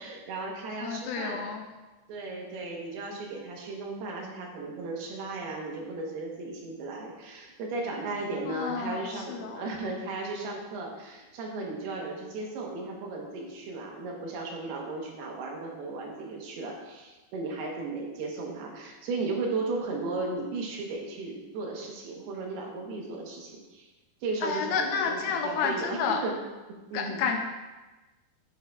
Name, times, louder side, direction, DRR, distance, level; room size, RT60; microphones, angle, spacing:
voice 1, 0.0-1.4 2.1-23.9 24.2-26.4 26.7-27.2, right 3 dB, 80° right, 0 dB, 3.1 m, -35 dB
voice 2, 0.8-1.6 8.5-9.6 24.4-26.2 26.9-27.4, left 6 dB, 80° left, 3 dB, 2.2 m, -30 dB
10.5 x 7.2 x 2.4 m, 1.2 s
omnidirectional pair, 4.5 m